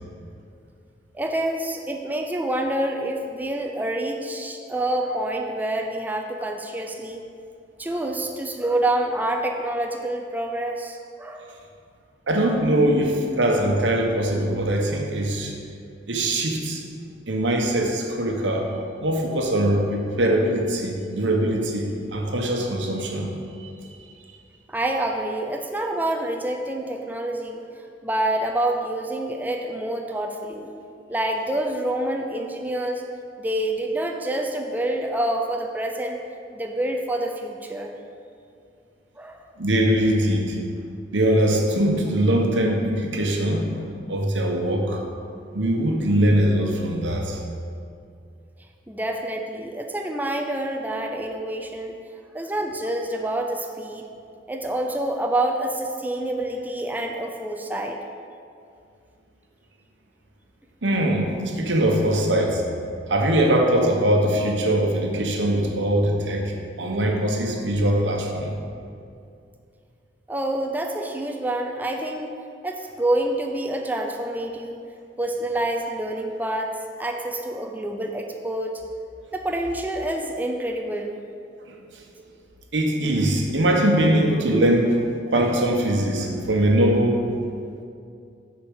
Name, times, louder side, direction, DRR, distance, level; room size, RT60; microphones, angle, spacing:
voice 1, 1.1-7.2 7.8-11.5 24.7-30.7 31.1-33.0 33.4-36.2 36.5-37.9 39.2-39.4 48.9-52.0 52.3-54.1 54.5-58.0 70.3-72.3 72.6-74.8 75.2-76.7 77.0-78.8 79.3-81.2, right 1 dB, 10° right, 2 dB, 0.4 m, -27 dB
voice 2, 12.3-15.5 16.1-16.8 17.3-18.7 19.0-23.3 23.6-23.7 39.6-40.6 41.1-45.0 45.5-47.4 60.8-62.6 63.1-68.5 81.7-81.8 82.7-87.3, right 1 dB, 85° right, 1 dB, 1.0 m, -22 dB
6.9 x 4.3 x 6.3 m, 2.4 s
head